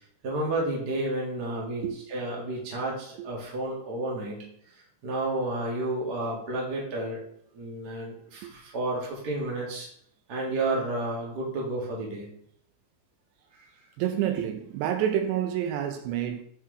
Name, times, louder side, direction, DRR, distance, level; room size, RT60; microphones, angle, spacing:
voice 1, 0.2-4.4 5.0-7.2 7.5-9.9 10.3-12.3, right 2 dB, 50° right, 1.2 m, -31 dB
voice 2, 14.0-16.4, right 10 dB, 80° right, 2.8 m, -28 dB
8.9 x 4.4 x 3.2 m
omnidirectional pair, 5.2 m